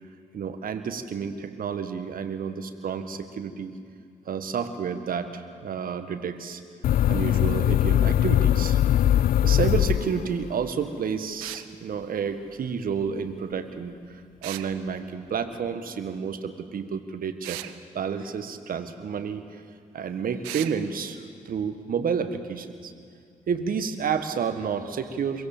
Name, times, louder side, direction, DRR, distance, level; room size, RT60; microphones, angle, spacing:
voice 1, 0.3-3.7 4.2-6.6 7.1-8.8 9.4-17.6 17.9-19.6 19.9-22.9 23.5-25.5, right 6 dB, 55° right, 9 dB, 1.6 m, -30 dB
sound 1, 6.8-10.6, left 11 dB, 55° left, 0.5 m, -21 dB
sound 2, 11.4-11.7 14.4-14.7 17.4-17.7 20.4-20.8, right 17 dB, 80° right, 0.7 m, -36 dB
23.0 x 17.0 x 7.3 m, 2.4 s
hypercardioid pair, 45°, 18 cm